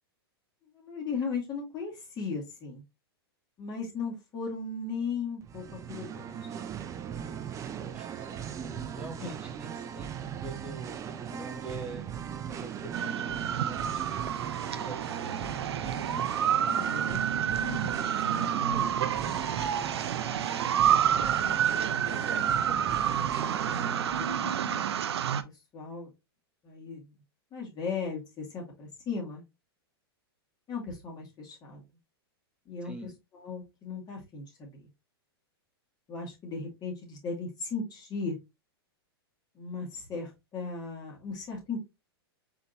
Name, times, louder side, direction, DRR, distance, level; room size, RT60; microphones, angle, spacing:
voice 1, 0.7-2.8 3.6-6.5 9.2-9.3 15.8-16.1 16.5-17.9 18.3-19.4 22.3-22.5 24.2-24.9 25.4-26.1 26.6-27.1 27.5-29.4 30.7-31.9 32.7-34.8 36.1-38.4 39.5-41.8, left 4 dB, 30° left, -1 dB, 2.0 m, -37 dB
Singing, 5.4-24.6, right 8 dB, 25° right, 0.5 m, -38 dB
voice 2, 7.7-16.3 20.5-23.4 32.8-33.1, right 2 dB, 5° right, 3 dB, 1.2 m, -46 dB
sound 1, 12.9-25.4, right 9 dB, 80° right, 0.5 m, -29 dB
4.2 x 3.8 x 2.6 m, 0.23 s
hypercardioid pair, 115°, 13 cm